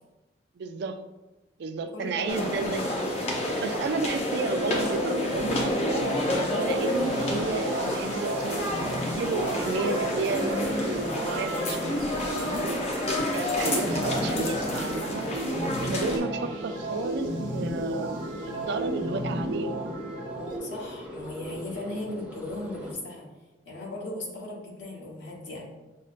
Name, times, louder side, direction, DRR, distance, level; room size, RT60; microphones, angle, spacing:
voice 1, 0.6-1.0 1.6-2.9 3.5-6.1 6.6-12.8 13.3-15.5 15.8-20.0, right 4 dB, 65° right, 8 dB, 0.3 m, -33 dB
voice 2, 1.9-2.5 2.8-3.0 13.6-13.8 16.0-16.1 20.6-23.3 23.6-25.6, left 1 dB, 75° left, -4 dB, 1.2 m, -37 dB
sound 1, 2.3-16.2, left 1 dB, 35° left, 0.6 m, -29 dB
sound 2, 4.6-20.6, right 1 dB, 80° right, 0.7 m, -34 dB
sound 3, 9.1-22.9, equal, 5° right, 0.5 m, -45 dB
6.3 x 2.1 x 2.5 m, 1.0 s
head